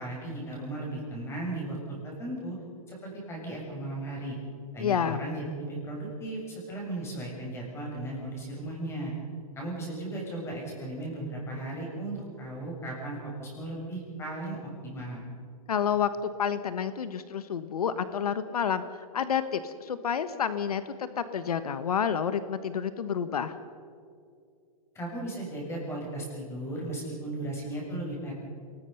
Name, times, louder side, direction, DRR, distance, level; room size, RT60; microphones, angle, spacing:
voice 1, 0.0-1.8 2.0-2.6 2.9-4.4 4.7-9.1 9.6-15.2 24.9-28.3, right 1 dB, 15° left, -2 dB, 7.2 m, -36 dB
voice 2, 4.8-5.2 15.7-18.8 19.1-23.6, left 7 dB, 90° left, 12 dB, 1.2 m, -29 dB
27.0 x 19.5 x 5.7 m, 2.3 s
hypercardioid pair, 150°, 19 cm